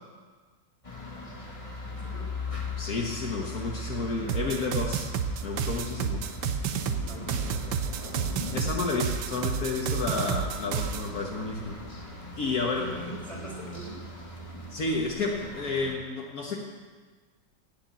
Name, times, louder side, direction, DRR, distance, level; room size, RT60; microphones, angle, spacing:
sound 1, 0.8-15.9, left 2 dB, 20° left, 1.5 m, -40 dB
voice 1, 1.9-2.4 7.0-8.0 12.4-12.5 12.8-14.0, right 3 dB, 15° right, -4 dB, 4.4 m, -44 dB
voice 2, 2.8-5.1 5.4-6.2 8.5-11.7 12.4-12.9 14.7-16.6, left 3 dB, 60° left, 0 dB, 1.7 m, -31 dB
sound 2, 4.3-11.1, right 7 dB, 75° right, 1.4 m, -30 dB
17.0 x 5.8 x 9.0 m, 1.5 s
omnidirectional pair, 1.9 m